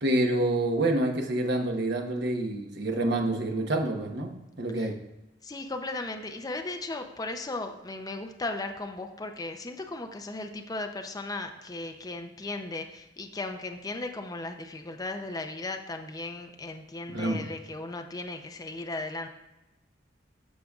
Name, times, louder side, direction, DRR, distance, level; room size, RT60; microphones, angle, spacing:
voice 1, 0.0-4.3 4.6-4.9 17.1-17.5, right 1 dB, 65° right, 2 dB, 1.1 m, -27 dB
voice 2, 5.4-19.3, left 2 dB, 20° left, 5 dB, 0.5 m, -36 dB
13.5 x 5.1 x 2.4 m, 0.99 s
head